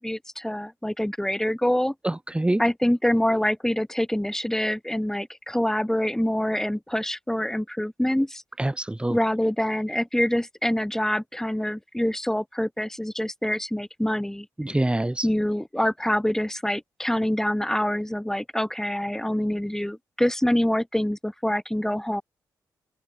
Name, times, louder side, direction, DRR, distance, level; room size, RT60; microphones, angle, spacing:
voice 1, 0.0-1.9 2.6-8.4 9.1-14.5 15.2-22.2, left 1 dB, 5° left, 8.0 m, -25 dB
voice 2, 2.0-2.6 8.6-9.2 14.6-15.3, right 1 dB, 15° right, 2.3 m, -25 dB
open air
cardioid pair, 65°, 8 cm